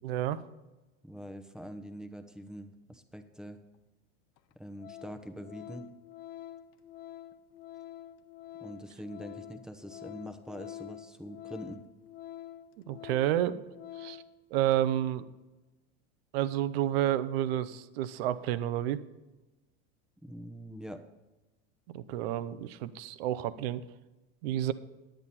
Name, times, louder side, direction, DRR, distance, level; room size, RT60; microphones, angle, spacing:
voice 1, 0.0-0.4 12.9-13.6 14.0-14.2 14.5-15.3 16.3-19.0 21.9-23.8 24.4-24.7, right 12 dB, 70° right, 13 dB, 0.7 m, -30 dB
voice 2, 1.0-3.6 4.5-5.9 8.6-11.8 20.2-21.0, equal, ahead, 8 dB, 0.9 m, -44 dB
Organ, 3.7-3.8 4.4-4.5 4.8-14.4 14.7-14.9, left 12 dB, 55° left, 0.7 m, -47 dB
10.5 x 9.0 x 4.3 m, 1.1 s
hypercardioid pair, 100°, 32 cm